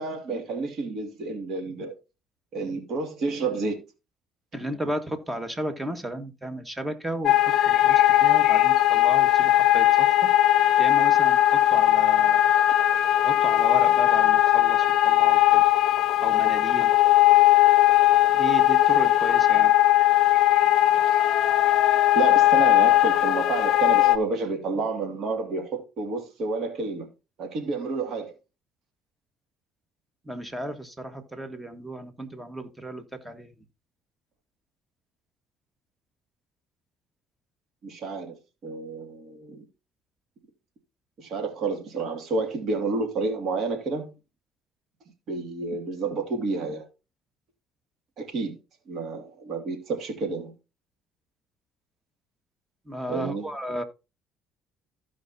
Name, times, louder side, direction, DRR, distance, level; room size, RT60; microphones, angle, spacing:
voice 1, 0.0-1.9 2.5-3.8 4.5-4.6 22.1-27.1 27.4-28.3 37.8-38.4 38.6-39.6 41.2-44.1 45.3-46.9 48.2-48.6 48.9-50.5 53.1-53.5, right 3 dB, 60° right, 2.3 m, -30 dB
voice 2, 4.5-7.3 7.6-10.3 10.8-12.5 13.2-15.7 16.2-16.9 18.3-19.7 30.2-33.5 52.9-53.8, right 1 dB, 15° right, 1.7 m, -34 dB
sound 1, 7.3-24.2, left 14 dB, 65° left, 0.4 m, -19 dB
15.0 x 5.1 x 2.8 m
supercardioid pair, 70°, 0 cm